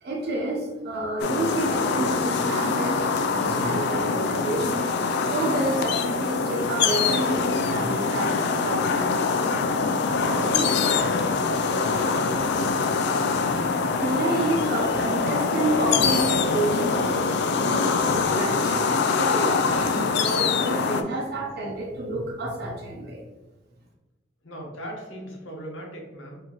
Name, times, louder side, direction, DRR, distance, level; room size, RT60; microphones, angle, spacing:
voice 1, 0.0-4.9 5.2-9.1 14.0-23.2, right 1 dB, 55° right, -3 dB, 0.8 m, -29 dB
sound 1, 1.2-21.0, left 4 dB, 60° left, 0.4 m, -24 dB
voice 2, 10.2-11.0 24.4-26.4, equal, 85° left, -1 dB, 1.1 m, -36 dB
4.6 x 2.9 x 3.0 m, 1.1 s
head